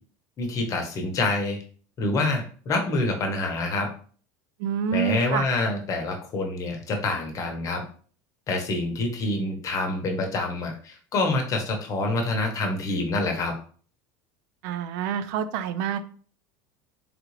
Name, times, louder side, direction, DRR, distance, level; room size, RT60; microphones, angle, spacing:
voice 1, 0.4-1.6 2.0-3.9 4.9-7.8 8.5-13.6, left 2 dB, 35° left, 0.8 m, -26 dB
voice 2, 4.6-5.5 14.6-16.0, right 9 dB, 75° right, 0.4 m, -27 dB
3.4 x 2.4 x 3.2 m
supercardioid pair, 135°, 10 cm